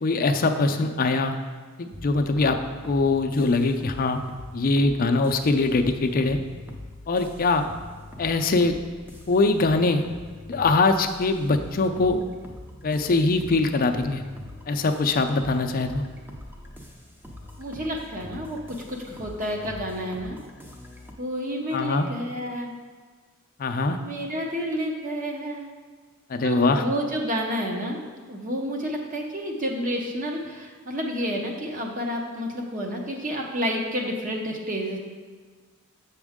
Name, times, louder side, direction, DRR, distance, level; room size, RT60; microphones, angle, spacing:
voice 1, 0.0-1.4 1.8-2.6 2.9-4.2 4.5-6.4 7.1-7.7 8.2-8.7 9.3-10.0 10.5-12.2 12.8-14.2 14.7-16.0 21.7-22.1 23.6-24.0 26.3-26.8, left 3 dB, 45° left, 6 dB, 0.5 m, -22 dB
sound 1, 1.9-21.1, left 1 dB, 10° right, 0.6 m, -43 dB
voice 2, 17.6-20.4 21.2-22.7 24.0-25.7 26.4-28.0 28.3-35.0, equal, 40° right, 1 dB, 0.9 m, -30 dB
7.1 x 6.1 x 3.6 m, 1.5 s
head